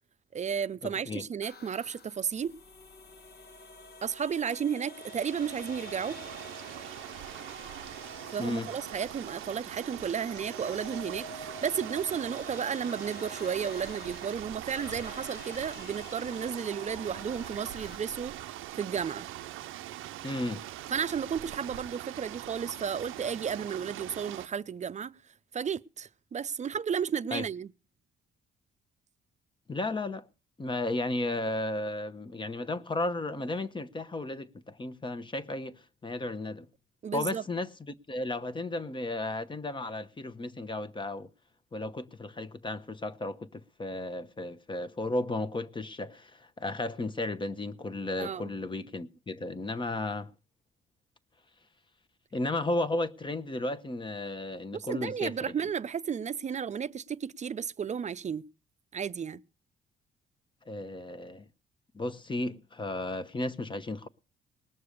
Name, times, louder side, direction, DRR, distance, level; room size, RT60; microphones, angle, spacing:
voice 1, 0.3-2.5 4.0-6.2 8.3-18.4 18.7-19.3 20.9-25.2 25.5-27.7 37.0-37.4 48.2-48.5 54.7-58.4 58.9-59.4, right 7 dB, 35° right, 0.6 m, -33 dB
voice 2, 0.8-1.3 8.4-8.7 20.2-20.6 27.3-27.4 29.7-30.3 30.6-36.7 37.1-37.7 38.1-41.3 41.7-50.3 52.3-55.5 60.7-61.5 61.9-64.1, left 2 dB, 25° left, 1.0 m, -34 dB
sound 1, 1.4-18.0, left 2 dB, 55° left, 1.3 m, -48 dB
sound 2, 4.9-24.5, right 14 dB, 90° right, 0.6 m, -42 dB
19.5 x 6.8 x 6.6 m
cardioid pair, 90°, 20 cm